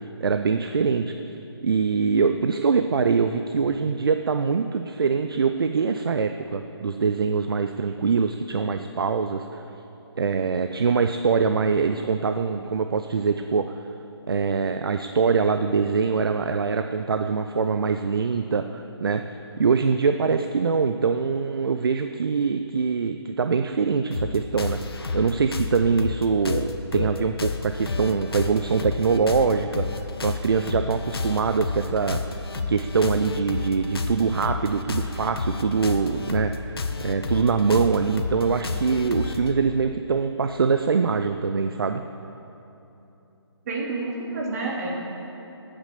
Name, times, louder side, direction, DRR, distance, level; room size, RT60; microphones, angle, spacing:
voice 1, 0.2-1.1 1.6-9.6 10.2-13.7 14.3-19.2 19.6-24.8 25.1-29.9 30.2-32.2 32.7-36.5 37.0-42.0, right 5 dB, 55° right, 8 dB, 0.7 m, -23 dB
sound 1, 24.1-39.5, left 4 dB, 60° left, 1.3 m, -30 dB
voice 2, 43.6-44.9, right 3 dB, 35° right, -3 dB, 3.2 m, -29 dB
18.5 x 8.9 x 6.9 m, 3.0 s
figure-of-eight pair, 145°, 14 cm